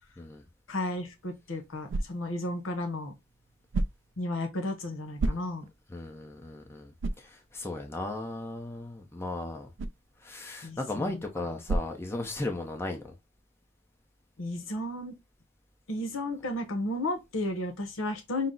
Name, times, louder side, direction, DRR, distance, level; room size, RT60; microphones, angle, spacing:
voice 1, 0.7-3.1 4.2-5.7 10.6-11.2 14.4-15.2 15.9-18.5, left 1 dB, 80° left, 0.9 m, -33 dB
sound 1, 1.0-12.8, right 2 dB, 65° right, 0.3 m, -38 dB
voice 2, 5.9-9.7 10.2-13.0, left 2 dB, 10° left, 0.6 m, -36 dB
5.6 x 2.0 x 3.8 m
head